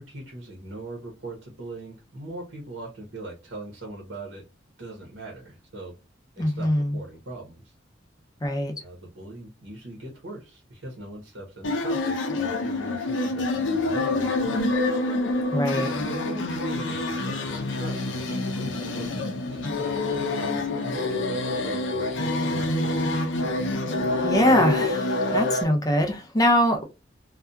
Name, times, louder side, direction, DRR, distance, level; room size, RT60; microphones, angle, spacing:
voice 1, 0.0-4.4 4.8-5.9 6.4-7.7 8.8-14.7 15.9-20.0 20.3-23.2, right 2 dB, 75° right, 0.9 m, -41 dB
voice 2, 6.4-7.0 8.4-8.7 15.5-15.9 24.2-26.8, left 1 dB, 20° left, 0.5 m, -22 dB
sound 1, 11.6-25.6, left 2 dB, 80° left, 0.6 m, -26 dB
2.7 x 2.3 x 2.2 m
head